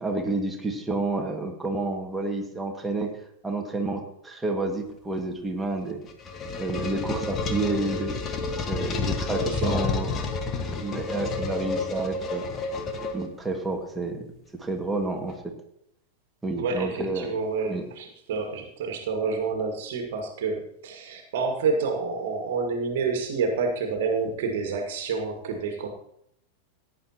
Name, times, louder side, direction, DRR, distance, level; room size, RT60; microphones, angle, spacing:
voice 1, 0.0-3.1 3.4-6.0 6.6-8.2 8.7-10.2 10.8-12.4 13.1-14.3 14.5-15.5 16.4-17.3 17.7-17.8, right 2 dB, 10° right, 2 dB, 1.8 m, -30 dB
sound 1, 5.8-13.6, left 3 dB, 30° left, 1.4 m, -30 dB
voice 2, 9.4-9.8 16.6-25.9, right 4 dB, 55° right, 4 dB, 1.8 m, -28 dB
16.5 x 9.8 x 2.9 m, 0.74 s
figure-of-eight pair, 90°, 0 cm